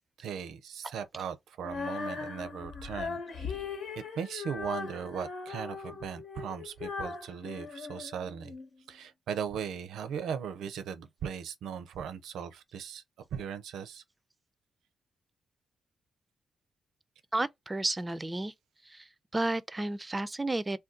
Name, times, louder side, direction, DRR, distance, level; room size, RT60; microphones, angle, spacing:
voice 1, 0.2-3.6 4.1-8.6 8.9-13.0 13.3-14.0, right 7 dB, 85° right, 0.5 m, -38 dB
Female singing, 1.6-8.7, left 5 dB, 80° left, 1.1 m, -39 dB
voice 2, 17.3-18.5 18.8-20.8, right 2 dB, 20° right, 0.4 m, -32 dB
2.6 x 2.2 x 3.7 m
cardioid pair, 80°, 0 cm